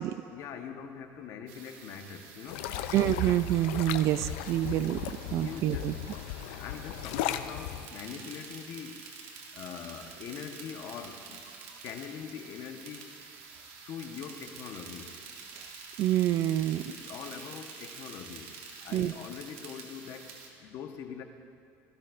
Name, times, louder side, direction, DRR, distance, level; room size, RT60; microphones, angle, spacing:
voice 1, 0.3-2.7 5.3-6.1 6.6-9.0 9.5-11.4 11.8-13.1 13.8-15.1 16.8-18.5 18.8-21.2, left 7 dB, 55° left, 5 dB, 1.1 m, -43 dB
sound 1, 1.5-20.5, right 5 dB, 80° right, 2.0 m, -48 dB
sound 2, 2.5-7.9, left 12 dB, 85° left, 0.5 m, -36 dB
voice 2, 2.9-5.9 16.0-16.8 18.9-19.1, right 13 dB, 50° right, 15 dB, 0.3 m, -27 dB
18.0 x 13.5 x 2.5 m, 2.6 s
cardioid pair, 135°, 6 cm